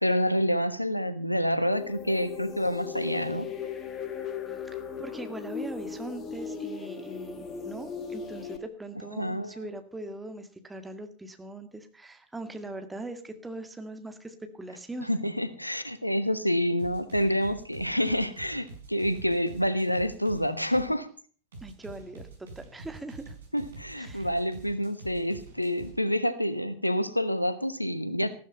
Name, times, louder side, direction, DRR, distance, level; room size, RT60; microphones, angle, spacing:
voice 1, 0.0-3.5 9.2-9.5 15.0-21.1 23.5-28.3, equal, 90° left, 13 dB, 1.3 m, -28 dB
sound 1, 1.7-8.6, left 6 dB, 25° left, 2.4 m, -37 dB
voice 2, 4.6-15.1 21.6-22.3 22.6-23.3 24.0-24.3, right 2 dB, 10° right, 8 dB, 2.1 m, -41 dB
sound 2, 16.8-20.9 21.5-25.9, right 3 dB, 65° right, 5.7 m, -46 dB
14.5 x 13.0 x 5.4 m, 0.40 s
figure-of-eight pair, 90°, 0 cm